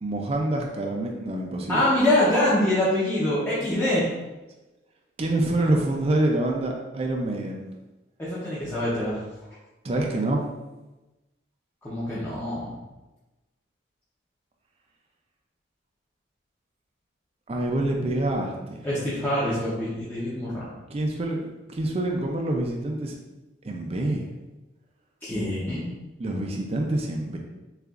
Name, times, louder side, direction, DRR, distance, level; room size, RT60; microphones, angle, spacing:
voice 1, 0.0-1.9 3.6-3.7 5.2-7.6 9.8-10.4 17.5-18.9 20.9-23.1 23.6-24.2 26.2-27.4, right 1 dB, 30° right, 0 dB, 0.4 m, -26 dB
voice 2, 1.7-4.1 8.2-9.2 11.8-12.8 18.8-20.7 25.2-25.9, left 1 dB, 10° left, -10 dB, 0.7 m, -25 dB
6.5 x 2.4 x 2.4 m, 1.1 s
head